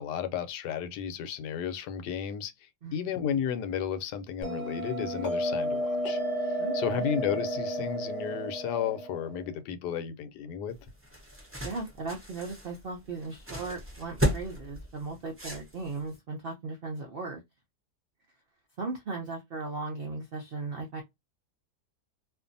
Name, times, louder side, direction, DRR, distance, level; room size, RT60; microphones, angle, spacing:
voice 1, 0.0-2.5 2.9-6.2 6.7-10.8, left 8 dB, 80° left, 1.2 m, -33 dB
Bell, 4.4-9.5, equal, 40° left, 0.7 m, -32 dB
voice 2, 6.6-7.1 11.6-17.4 18.8-21.0, right 3 dB, 85° right, 0.5 m, -37 dB
sound 1, 10.7-16.1, equal, 15° right, 0.4 m, -35 dB
2.6 x 2.5 x 2.5 m
omnidirectional pair, 1.8 m